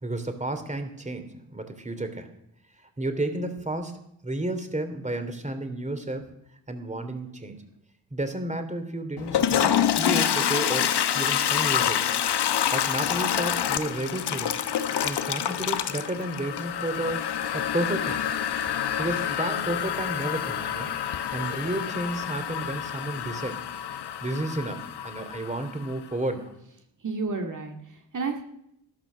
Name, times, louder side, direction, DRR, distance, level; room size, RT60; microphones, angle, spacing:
voice 1, 0.0-2.3 3.0-6.2 6.7-7.6 8.1-12.0 12.7-14.5 14.9-18.2 19.0-20.9 21.3-23.6 24.2-26.5, right 1 dB, 15° right, 9 dB, 3.0 m, -32 dB
Toilet flush, 9.2-25.9, left 9 dB, 70° left, 1.2 m, -27 dB
voice 2, 27.0-28.4, right 4 dB, 45° right, 3 dB, 2.2 m, -31 dB
12.5 x 12.5 x 6.3 m, 0.77 s
supercardioid pair, 50°, 42 cm